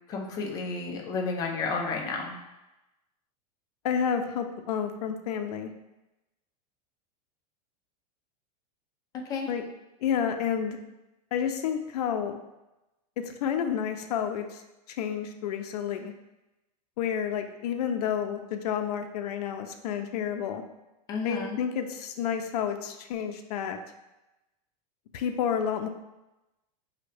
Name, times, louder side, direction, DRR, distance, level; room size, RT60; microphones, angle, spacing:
voice 1, 0.1-2.4 9.3-9.5 21.1-21.6, left 4 dB, 20° left, 1 dB, 0.5 m, -31 dB
voice 2, 3.8-5.7 9.5-9.7 10.0-10.8 11.3-12.4 13.2-14.6 14.9-16.1 17.0-20.6 21.2-23.8 25.1-25.9, left 8 dB, 80° left, 6 dB, 0.5 m, -30 dB
5.1 x 2.8 x 3.2 m, 0.98 s
supercardioid pair, 170°, 20 cm